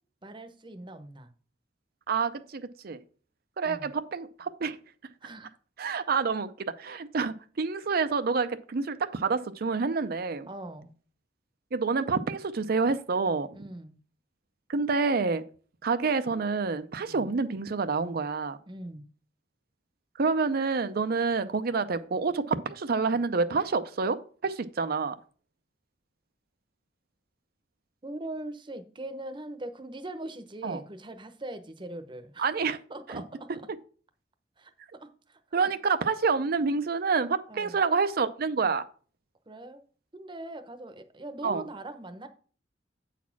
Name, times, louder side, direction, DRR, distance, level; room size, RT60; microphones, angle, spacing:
voice 1, 0.2-1.3 3.6-3.9 5.2-5.5 10.5-10.9 13.5-14.0 17.0-17.3 18.7-19.1 28.0-32.4 32.9-33.5 34.6-35.4 37.5-37.8 39.5-39.8 40.1-42.3, right 1 dB, 25° right, 0.8 m, -41 dB
voice 2, 2.1-3.0 3.6-4.8 5.8-10.5 11.7-13.6 14.7-15.4 15.8-18.6 20.2-24.2 24.4-25.2 30.6-30.8 32.4-32.8 33.1-33.2 35.5-38.8 41.4-41.7, right 4 dB, 55° right, 0.5 m, -28 dB
8.3 x 4.2 x 5.8 m
head